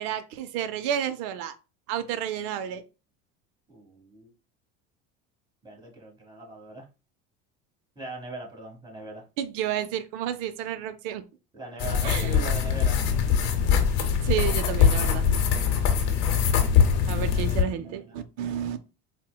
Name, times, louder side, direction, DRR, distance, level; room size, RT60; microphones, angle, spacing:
voice 1, 0.0-1.6 1.9-2.8 9.4-11.2 12.0-12.4 14.2-15.3 17.1-18.8, right 10 dB, 75° right, 0.5 m, -31 dB
voice 2, 3.7-4.3 5.6-6.9 7.9-9.2 11.5-13.0 17.2-18.2, right 2 dB, 15° right, 1.4 m, -41 dB
sound 1, 11.8-17.6, left 7 dB, 70° left, 0.8 m, -22 dB
4.0 x 2.1 x 2.2 m
supercardioid pair, 90°, 30 cm